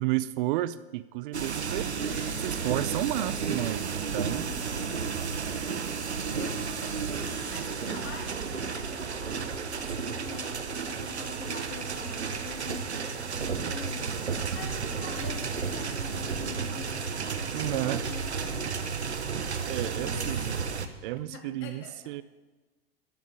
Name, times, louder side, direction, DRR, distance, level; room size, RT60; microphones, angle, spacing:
voice 1, 0.0-1.9 2.4-4.5 17.5-18.0 19.7-20.6 21.0-22.2, right 16 dB, 55° right, 17 dB, 0.5 m, -32 dB
sound 1, 1.3-20.9, right 5 dB, 90° right, 1.0 m, -32 dB
voice 2, 2.1-3.4 4.4-5.1 6.3-17.0 17.6-18.6 19.9-20.5 21.1-22.2, left 6 dB, 40° left, 3 dB, 2.8 m, -45 dB
12.5 x 7.2 x 8.3 m, 1.2 s
figure-of-eight pair, 90°, 32 cm